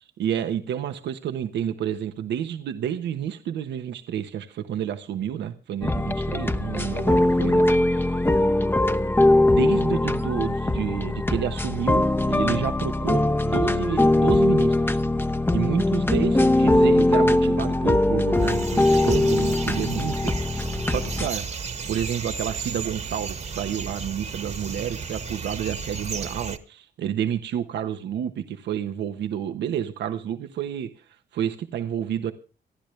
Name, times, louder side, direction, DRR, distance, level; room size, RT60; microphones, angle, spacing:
voice 1, 0.2-7.6 7.9-8.1 9.5-15.0 15.5-30.9 31.3-32.3, right 9 dB, 85° right, 8 dB, 1.2 m, -30 dB
sound 1, 5.8-21.3, left 1 dB, 10° left, 0.8 m, -21 dB
sound 2, 18.3-26.6, right 5 dB, 40° right, 1.4 m, -34 dB
27.5 x 10.5 x 3.3 m, 0.35 s
cardioid pair, 85°, 18 cm